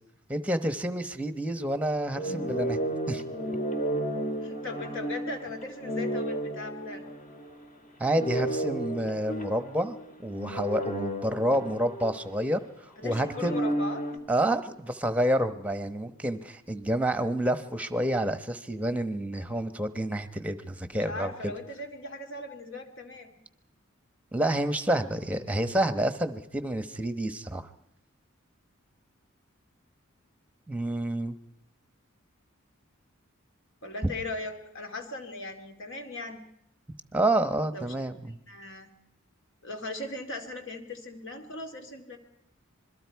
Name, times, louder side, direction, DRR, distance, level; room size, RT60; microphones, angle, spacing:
voice 1, 0.3-2.8 3.1-3.2 8.0-12.6 13.0-13.5 14.3-21.5 24.3-27.7 30.7-31.3 37.1-38.4, right 1 dB, 5° right, 10 dB, 1.0 m, -29 dB
sound 1, 2.1-7.6 8.0-12.6 13.0-14.2, right 1 dB, 40° left, 2.1 m, -33 dB
voice 2, 4.4-7.0 13.0-14.1 21.0-23.4 33.8-36.4 37.7-37.9 38.5-38.9 39.6-42.2, left 2 dB, 60° left, 5 dB, 2.6 m, -38 dB
26.5 x 22.0 x 4.7 m, 0.73 s
head